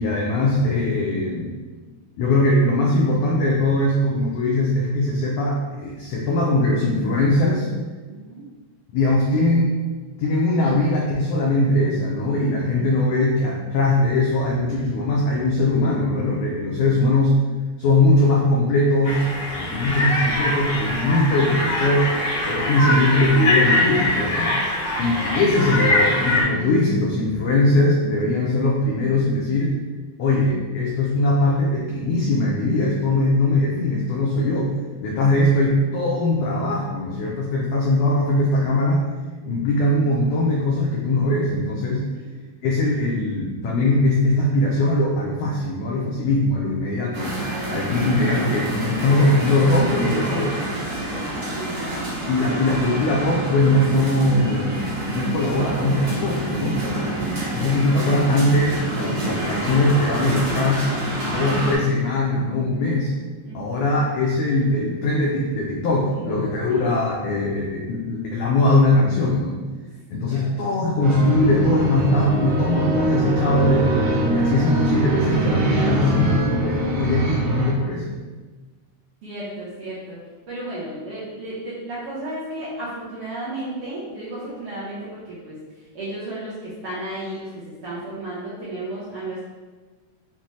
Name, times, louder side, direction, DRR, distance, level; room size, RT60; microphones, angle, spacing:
voice 1, 0.0-1.5 2.2-7.7 8.9-9.7 10.2-17.3 17.8-22.1 22.4-24.6 25.0-29.8 30.2-34.7 35.0-39.1 39.4-42.0 42.6-47.4 47.7-50.5 52.3-57.1 57.5-60.9 61.2-63.1 63.5-69.6 70.1-73.9 74.3-78.2, left 2 dB, 90° left, -3 dB, 1.4 m, -21 dB
voice 2, 8.0-8.4 12.7-13.1 25.2-25.3 35.1-35.4 39.4-39.5 42.1-42.4 47.6-48.0 49.8-50.5 51.5-52.2 52.7-52.8 63.4-63.8 66.0-66.9 70.3-70.8 79.2-80.2 80.5-85.6 85.9-89.4, right 2 dB, 70° right, -9 dB, 1.4 m, -34 dB
sound 1, 19.0-26.4, left 1 dB, 70° left, 0.8 m, -23 dB
sound 2, 47.1-61.8, right 1 dB, 50° right, 1.6 m, -28 dB
sound 3, 71.0-77.7, right 1 dB, 90° right, 2.4 m, -22 dB
5.5 x 2.1 x 3.1 m, 1.3 s
omnidirectional pair, 3.5 m